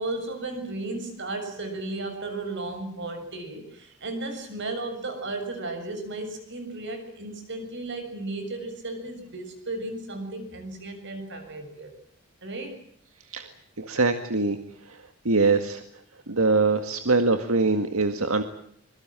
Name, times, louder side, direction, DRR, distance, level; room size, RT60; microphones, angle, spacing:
voice 1, 0.0-11.9 12.4-12.8, right 2 dB, 60° right, 8 dB, 6.8 m, -34 dB
voice 2, 13.8-14.6 14.9-15.0 15.3-15.8 16.3-18.4, right 3 dB, 85° right, 8 dB, 1.9 m, -23 dB
25.5 x 23.0 x 7.6 m, 0.64 s
head